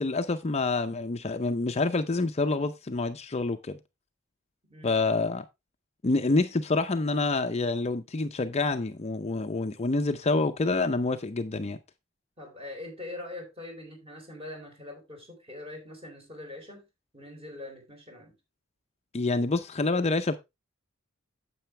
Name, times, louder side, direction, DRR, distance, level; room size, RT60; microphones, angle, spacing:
voice 1, 0.0-3.8 4.8-5.4 6.0-11.8 19.1-20.4, left 3 dB, 30° left, 0.6 m, -27 dB
voice 2, 4.7-5.2 12.4-16.8 17.1-18.3, left 2 dB, 30° right, 3.9 m, -43 dB
9.1 x 7.8 x 3.2 m
head